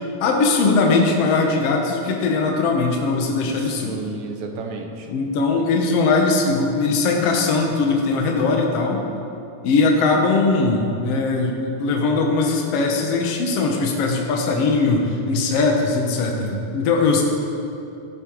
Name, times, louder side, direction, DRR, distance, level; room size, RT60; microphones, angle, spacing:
voice 1, 0.0-4.0 5.1-9.0 9.6-17.2, left 3 dB, 60° left, 1 dB, 2.0 m, -20 dB
voice 2, 3.6-5.1, right 4 dB, 70° right, 3 dB, 2.2 m, -32 dB
15.0 x 8.9 x 4.6 m, 2.7 s
omnidirectional pair, 3.6 m